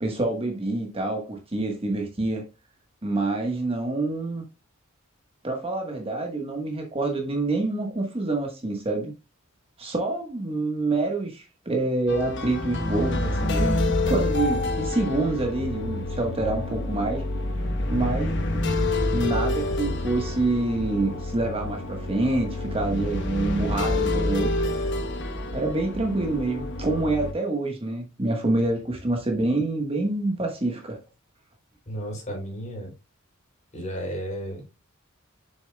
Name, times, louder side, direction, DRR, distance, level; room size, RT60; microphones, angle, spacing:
voice 1, 0.0-2.4 3.0-4.4 5.4-9.1 9.8-17.2 17.9-18.6 19.1-24.9 25.5-31.0, right 2 dB, 30° right, 1.2 m, -27 dB
sound 1, 12.1-27.3, left 2 dB, 60° left, 1.1 m, -27 dB
voice 2, 31.9-32.9 33.7-34.8, equal, 35° left, 3.6 m, -33 dB
7.1 x 6.8 x 2.2 m
head